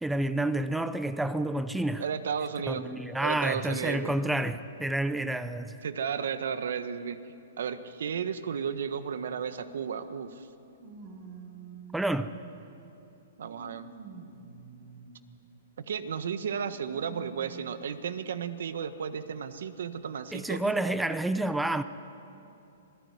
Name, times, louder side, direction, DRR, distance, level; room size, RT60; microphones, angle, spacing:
voice 1, 0.0-2.0 2.7-5.8 11.9-12.3 20.3-21.8, right 1 dB, 5° right, 0.7 m, -29 dB
voice 2, 2.0-2.9 3.2-4.1 5.8-7.2 7.6-10.5 13.4-13.9 15.8-20.7, right 7 dB, 75° right, 1.5 m, -33 dB
sound 1, 10.8-12.8 13.4-15.4 16.6-18.0 18.8-18.9 20.0-20.1, right 5 dB, 45° right, 5.6 m, -48 dB
26.5 x 17.0 x 9.7 m
hypercardioid pair, 155°, 0 cm